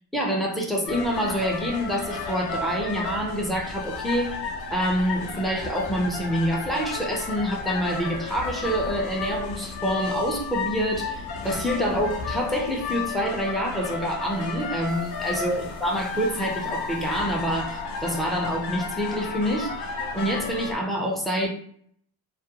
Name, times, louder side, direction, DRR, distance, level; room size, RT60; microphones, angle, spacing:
voice 1, 0.1-4.4 4.7-21.5, equal, ahead, -1 dB, 0.3 m, -27 dB
sound 1, 0.8-20.7, left 4 dB, 55° left, 0.5 m, -32 dB
2.4 x 2.2 x 2.7 m, 0.63 s
cardioid pair, 130°, 46 cm